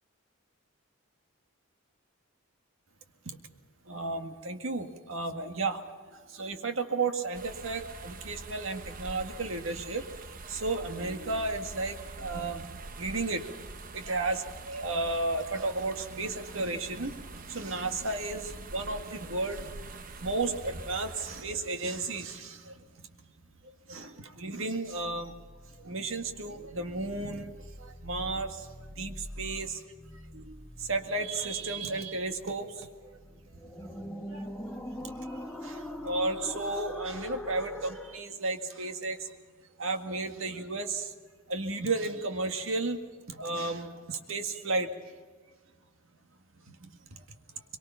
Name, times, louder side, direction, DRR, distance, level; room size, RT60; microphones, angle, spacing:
voice 1, 3.9-23.3 23.6-25.3 25.8-29.8 30.3-33.2 33.4-39.4 39.8-41.1 41.5-43.0 43.3-45.1 46.7-47.2, right 3 dB, 70° right, 6 dB, 1.8 m, -34 dB
sound 1, 7.3-21.4, right 3 dB, 40° right, 0.9 m, -45 dB
sound 2, 25.0-38.2, left 1 dB, 5° left, 1.2 m, -44 dB
23.5 x 23.0 x 5.8 m, 1.5 s
head